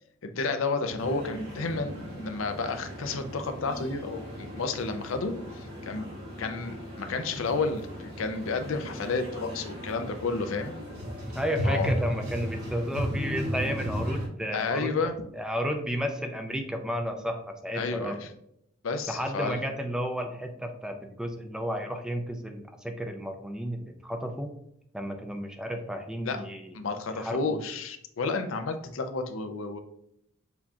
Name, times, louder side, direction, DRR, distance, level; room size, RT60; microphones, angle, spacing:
voice 1, 0.2-6.1 6.4-10.8 11.6-11.9 14.5-15.2 17.7-18.3 18.8-19.6 26.2-26.5 26.7-29.8, left 3 dB, 75° left, 7 dB, 0.5 m, -31 dB
sound 1, 1.0-14.3, equal, 50° right, 1.6 m, -35 dB
voice 2, 11.3-14.9 15.3-18.2 19.1-24.5 24.9-26.8 27.2-27.5, equal, 5° right, 4 dB, 0.5 m, -32 dB
6.9 x 2.8 x 2.4 m, 0.74 s
head